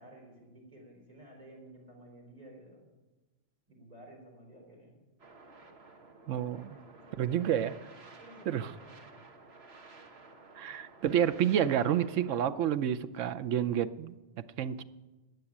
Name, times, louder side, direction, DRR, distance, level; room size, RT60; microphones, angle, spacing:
voice 1, 0.0-2.9 3.7-5.0 6.9-7.5 8.2-9.1, right 1 dB, 30° right, -1 dB, 3.8 m, -53 dB
sound 1, 5.2-12.5, right 3 dB, 60° right, 1.7 m, -54 dB
voice 2, 6.3-6.8 7.2-7.8 8.5-8.7 10.6-14.1 14.6-14.8, right 9 dB, 85° right, 13 dB, 1.1 m, -29 dB
13.5 x 9.2 x 9.9 m, 1.1 s
omnidirectional pair, 1.3 m